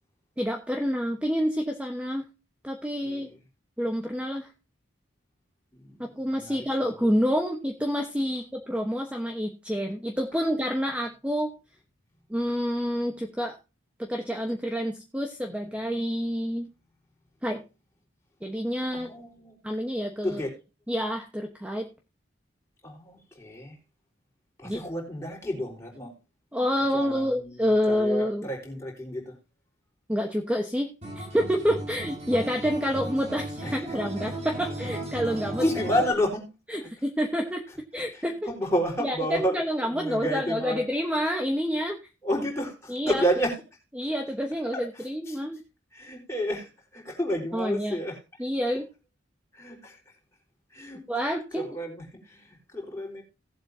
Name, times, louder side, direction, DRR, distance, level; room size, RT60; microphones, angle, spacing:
voice 1, 0.4-2.3 2.6-3.3 3.8-4.5 6.0-11.5 12.3-13.6 14.0-16.7 17.4-17.6 18.4-19.1 19.6-20.4 20.9-21.9 24.6-24.8 26.5-28.5 30.1-30.9 31.1-35.6 36.7-37.6 37.9-38.4 39.0-42.0 42.9-43.2 44.0-45.6 47.5-48.0 48.4-48.9 51.1-51.6, equal, 5° right, 1.1 m, -28 dB
voice 2, 3.0-3.4 5.7-6.6 18.9-19.6 20.2-20.5 22.8-23.8 24.6-26.1 26.9-29.3 33.6-34.0 35.6-36.9 38.1-40.8 42.2-43.5 44.9-45.4 45.9-48.2 49.5-50.0 50.7-51.2 51.5-53.2, equal, 15° left, 4.1 m, -31 dB
Acoustic guitar, 31.0-36.1, right 1 dB, 35° right, 4.1 m, -36 dB
18.0 x 7.8 x 2.7 m
head